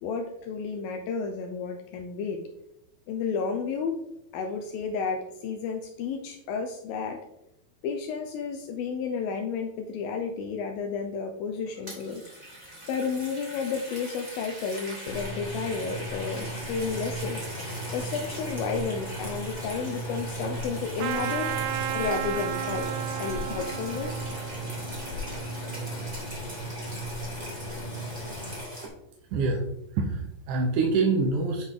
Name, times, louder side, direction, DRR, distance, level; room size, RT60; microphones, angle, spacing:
voice 1, 0.0-2.4 3.1-4.0 4.3-7.2 7.8-12.2 12.9-17.4 17.9-21.5 21.9-22.9 23.2-24.3, left 5 dB, 80° left, 3 dB, 2.4 m, -32 dB
sound 1, 11.6-28.9, right 1 dB, 20° right, 1.3 m, -41 dB
sound 2, 15.1-28.6, right 1 dB, 65° left, 2.5 m, -36 dB
Trumpet, 21.0-26.0, right 11 dB, 90° right, 2.6 m, -34 dB
voice 2, 29.3-29.6 29.9-31.6, right 3 dB, 70° right, 0 dB, 2.1 m, -25 dB
10.0 x 5.2 x 3.7 m, 0.83 s
omnidirectional pair, 4.3 m